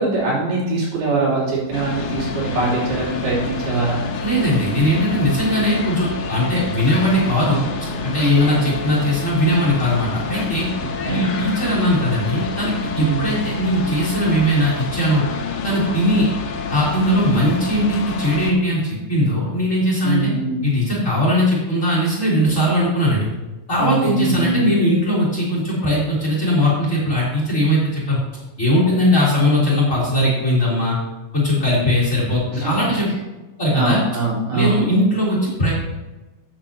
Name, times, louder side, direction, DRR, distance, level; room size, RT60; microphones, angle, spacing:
voice 1, 0.0-4.0 8.3-8.7 11.0-11.2 13.0-13.3 20.0-20.6 23.8-24.7 32.5-32.7 33.7-34.8, right 3 dB, 80° right, -6 dB, 5.5 m, -22 dB
sound 1, 1.7-18.5, left 4 dB, 70° left, 2.6 m, -28 dB
voice 2, 4.2-7.7 8.0-10.7 11.1-15.2 15.6-16.3 16.7-20.3 20.6-23.3 23.7-28.2 28.6-31.0 31.3-33.2 33.6-34.0 34.5-35.7, equal, 20° left, -6 dB, 3.7 m, -19 dB
14.0 x 9.0 x 2.9 m, 1.1 s
omnidirectional pair, 4.4 m